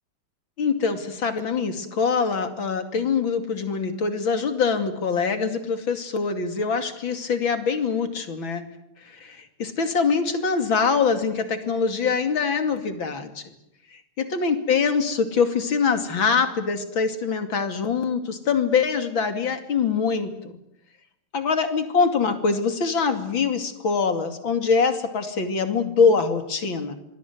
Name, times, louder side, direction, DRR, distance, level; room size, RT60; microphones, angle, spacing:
voice 1, 0.6-8.6 9.0-13.4 13.9-20.6 21.3-27.0, left 5 dB, 60° left, 8 dB, 3.3 m, -24 dB
26.5 x 21.0 x 9.5 m, 0.83 s
omnidirectional pair, 2.4 m